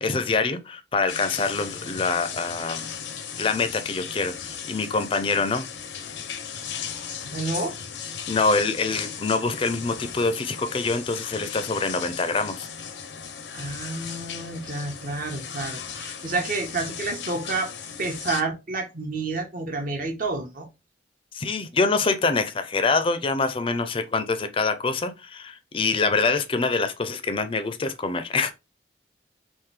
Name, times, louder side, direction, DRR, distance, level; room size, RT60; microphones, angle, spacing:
voice 1, 0.0-2.8 3.4-5.7 8.3-12.7 21.3-28.5, left 4 dB, 30° left, 0.4 m, -25 dB
sound 1, 1.1-18.4, left 7 dB, 85° left, 0.6 m, -36 dB
voice 2, 7.2-7.8 13.5-17.7 18.0-20.7, right 3 dB, 50° right, 0.9 m, -29 dB
3.6 x 2.6 x 3.2 m
head